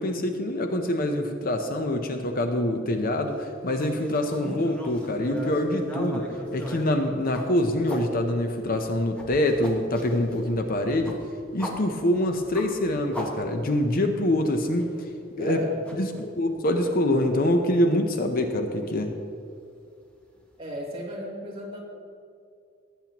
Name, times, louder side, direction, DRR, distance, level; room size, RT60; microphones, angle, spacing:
voice 1, 0.0-11.2 11.5-14.9 15.4-15.6 15.9-19.1, left 1 dB, 45° left, 5 dB, 0.7 m, -25 dB
sound 1, 3.7-8.0 8.5-13.9 14.2-14.3 14.8-15.0 15.8-16.6 16.8-16.9 17.4-17.5 18.8-18.9, equal, 5° left, 1.4 m, -38 dB
voice 2, 15.4-15.8 20.6-21.8, equal, 25° right, -4 dB, 2.4 m, -35 dB
18.0 x 8.7 x 3.0 m, 2.4 s
head